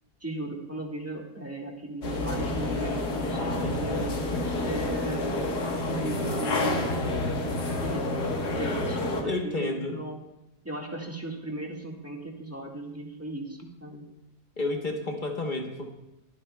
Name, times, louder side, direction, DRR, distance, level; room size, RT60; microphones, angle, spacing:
voice 1, 0.2-4.1 4.6-5.3 5.9-7.0 7.8-10.2 10.6-14.0, right 1 dB, 10° right, -1 dB, 1.5 m, -37 dB
sound 1, 2.0-9.2, left 2 dB, 85° left, 1.9 m, -29 dB
voice 2, 9.2-10.0 14.6-15.9, left 2 dB, 35° left, 2 dB, 1.2 m, -31 dB
22.5 x 8.5 x 2.3 m, 0.94 s
omnidirectional pair, 1.7 m